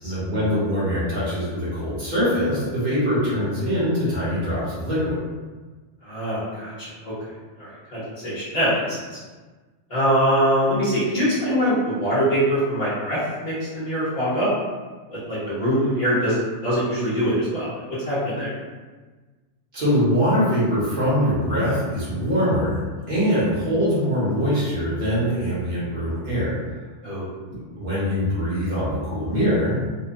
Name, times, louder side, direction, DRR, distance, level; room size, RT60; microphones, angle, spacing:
voice 1, 0.0-5.2 19.7-26.6 27.5-29.8, equal, 45° right, -9 dB, 1.2 m, -23 dB
voice 2, 6.0-7.1 7.6-9.2 9.9-14.5 15.1-17.7 18.0-18.5 27.0-27.3, equal, 35° left, -12 dB, 0.8 m, -23 dB
3.0 x 2.1 x 2.5 m, 1.3 s
omnidirectional pair, 1.3 m